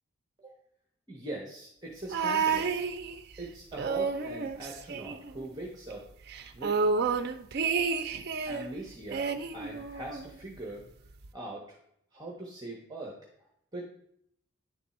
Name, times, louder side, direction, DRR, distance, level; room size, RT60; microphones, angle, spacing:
voice 1, 1.1-2.8 3.4-6.1 6.5-6.7 8.5-10.8 11.3-11.8 12.1-13.2 13.7-13.8, right 1 dB, 20° right, -2 dB, 0.8 m, -41 dB
sound 1, 2.1-3.4 3.7-5.6 5.9-6.0 6.3-8.7 9.1-10.4 11.2-11.3, right 5 dB, 50° right, 0.4 m, -30 dB
9.7 x 3.4 x 4.1 m, 0.71 s
head